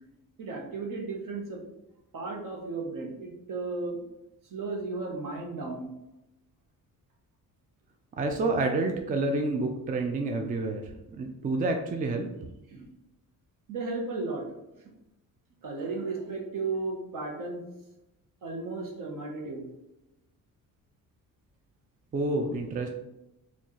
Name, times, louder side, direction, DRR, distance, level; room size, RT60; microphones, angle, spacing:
voice 1, 0.4-1.6 2.1-4.0 4.5-5.9 12.7-12.9 13.7-14.5 15.6-17.6 18.4-19.7, right 3 dB, 60° right, 1 dB, 1.0 m, -34 dB
voice 2, 8.2-10.8 11.1-12.3 22.1-22.9, right 2 dB, 25° right, 4 dB, 0.4 m, -28 dB
4.2 x 2.4 x 3.0 m, 0.92 s
cardioid pair, 90°, 37 cm